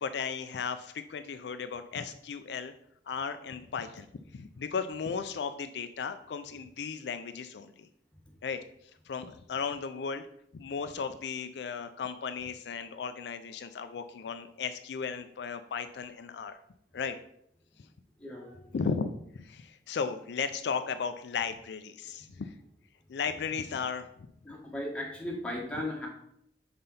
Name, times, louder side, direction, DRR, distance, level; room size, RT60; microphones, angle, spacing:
voice 1, 0.0-2.7 3.1-4.1 4.3-7.9 8.4-8.6 9.1-10.3 10.5-16.6 16.9-17.2 18.7-22.5 23.1-24.1, left 6 dB, 70° left, 10 dB, 0.4 m, -35 dB
voice 2, 18.2-18.8 24.4-26.1, left 1 dB, 5° left, -2 dB, 1.5 m, -37 dB
5.6 x 3.9 x 5.5 m, 0.72 s
head